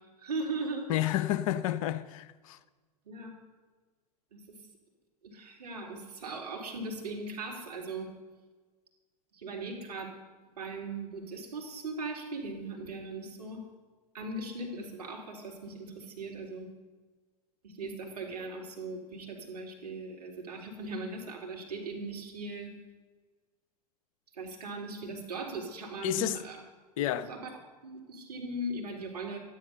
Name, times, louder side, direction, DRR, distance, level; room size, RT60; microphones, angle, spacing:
voice 1, 0.2-0.9 3.0-3.3 4.3-4.4 5.2-8.1 9.3-10.1 10.6-13.6 14.1-16.7 17.6-22.7 24.3-26.6 27.1-29.4, right 2 dB, 75° right, 3.4 m, -39 dB
voice 2, 0.9-2.6 26.0-26.4 27.0-27.3, left 12 dB, 55° left, 0.7 m, -30 dB
12.5 x 10.5 x 6.7 m
figure-of-eight pair, 90°, 20 cm